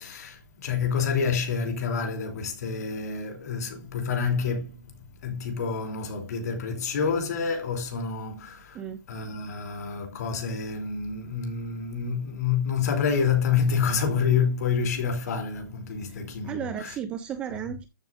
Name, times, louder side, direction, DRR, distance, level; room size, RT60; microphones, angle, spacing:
voice 1, 0.0-4.8 5.2-8.8 9.1-17.0 17.6-17.7, left 6 dB, 45° left, 3.0 m, -28 dB
voice 2, 16.4-17.9, right 9 dB, 10° right, 0.4 m, -34 dB
13.0 x 7.2 x 2.5 m
hypercardioid pair, 170°, 12 cm